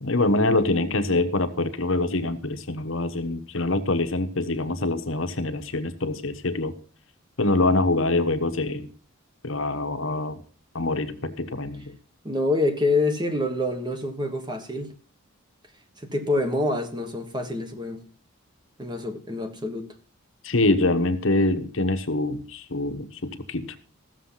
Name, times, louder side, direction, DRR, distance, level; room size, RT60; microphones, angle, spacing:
voice 1, 0.0-6.7 7.4-8.9 9.4-10.4 10.7-11.9 20.4-23.7, left 2 dB, 65° left, 1.2 m, -25 dB
voice 2, 12.2-14.9 16.0-18.0 18.8-19.9, left 2 dB, 20° right, 1.3 m, -26 dB
15.0 x 7.1 x 5.7 m
head